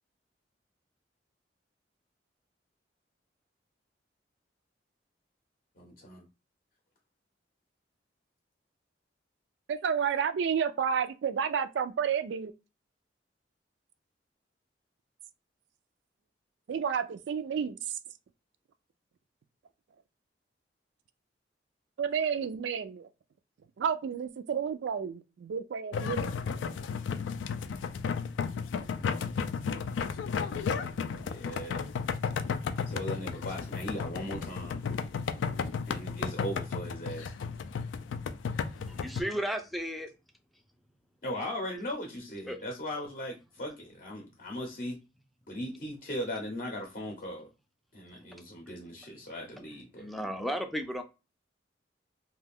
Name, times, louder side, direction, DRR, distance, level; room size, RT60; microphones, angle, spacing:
voice 1, 5.8-6.2 31.2-31.8 32.7-34.8 35.9-37.3 41.2-45.0 45.5-47.5 47.9-50.1, equal, 45° left, 0.6 m, -38 dB
voice 2, 9.7-12.5 16.7-17.8 22.0-23.0 23.8-25.2 25.5-26.3, right 7 dB, 75° right, 0.3 m, -30 dB
sound 1, 25.9-39.2, left 6 dB, 85° left, 0.3 m, -33 dB
voice 3, 38.9-40.1 42.5-42.6 50.0-51.0, equal, ahead, 0.3 m, -34 dB
2.5 x 2.3 x 3.4 m
head